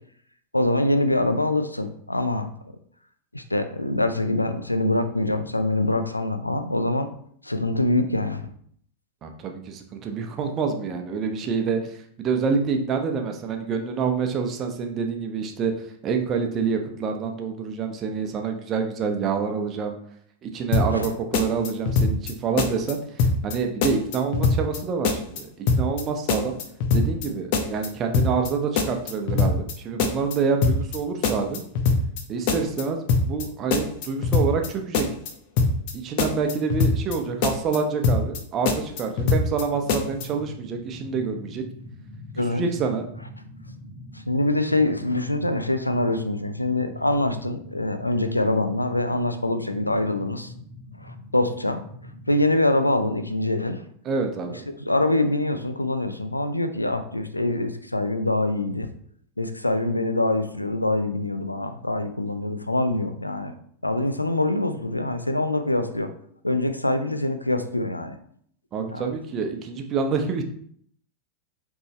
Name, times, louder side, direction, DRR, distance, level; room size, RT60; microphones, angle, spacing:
voice 1, 0.5-2.5 3.3-7.1 7.4-8.5 20.9-21.1 42.4-42.6 44.3-50.5 51.0-51.8 52.3-53.8 54.8-58.9 59.4-63.5 63.8-66.1 66.4-68.1 68.9-69.1, left 2 dB, 85° left, 8 dB, 0.5 m, -24 dB
voice 2, 9.2-15.7 16.0-20.0 20.4-23.0 23.4-26.6 26.9-31.6 32.3-35.1 35.9-41.6 42.5-43.0 54.0-54.7 68.7-70.4, right 5 dB, 30° right, 4 dB, 1.0 m, -27 dB
sound 1, 20.7-21.1 21.3-22.3 22.6-22.9 23.2-23.6 23.8-24.8 25.0-25.4 25.7-26.0 26.3-27.3 27.5-27.9 28.1-28.5 28.8-29.7 30.0-30.4 30.6-31.0 31.2-32.2 32.5-32.8 33.1-33.5 33.7-34.7 34.9-35.3 35.6-35.9 36.2-37.2 37.4-37.8 38.0-38.4 38.7-39.6 39.9-40.3, left 4 dB, 45° left, 0.9 m, -22 dB
sound 2, 39.7-52.5, left 2 dB, ahead, 2.2 m, -43 dB
7.9 x 3.7 x 3.2 m, 0.63 s
figure-of-eight pair, 90°, 0 cm